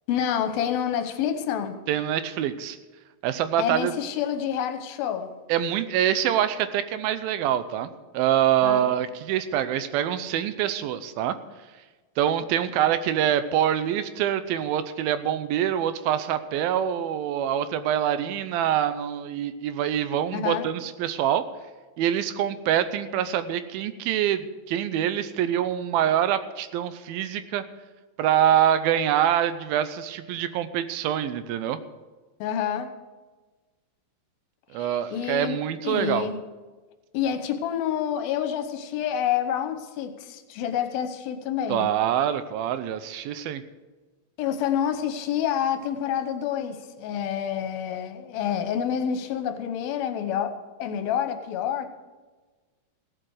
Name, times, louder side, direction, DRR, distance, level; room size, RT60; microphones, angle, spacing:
voice 1, 0.1-1.8 3.6-5.3 8.6-8.9 20.3-20.7 32.4-32.9 34.7-35.6 35.8-36.4 37.1-41.9 44.4-51.9, left 9 dB, 80° left, 8 dB, 2.8 m, -28 dB
voice 2, 1.9-2.8 3.2-3.9 5.5-11.4 12.2-21.5 22.0-27.6 28.2-31.8 34.7-36.3 41.7-43.6, right 10 dB, 80° right, 12 dB, 2.5 m, -25 dB
16.0 x 7.6 x 6.4 m, 1.3 s
omnidirectional pair, 4.3 m